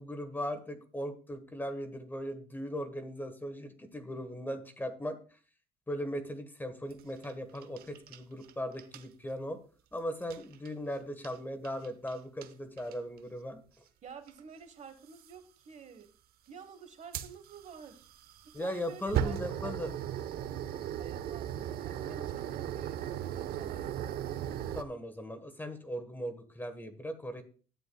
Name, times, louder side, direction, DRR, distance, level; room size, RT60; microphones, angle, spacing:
voice 1, 0.0-5.2 5.9-9.6 9.9-13.6 18.5-20.0 24.7-27.4, equal, 10° left, 9 dB, 1.3 m, -38 dB
sound 1, 6.9-8.5 8.8-9.0 10.2-10.7 11.2-11.4 11.6-12.1 12.4-12.5 12.8-13.2 14.3-14.4 15.1-15.3 17.1-24.8, right 10 dB, 65° right, 0.8 m, -37 dB
voice 2, 14.0-16.1 16.5-18.1 18.4-20.0 21.0-23.9, right 6 dB, 45° right, 9 dB, 1.2 m, -50 dB
11.5 x 9.3 x 2.3 m, 0.38 s
cardioid pair, 110°, 17 cm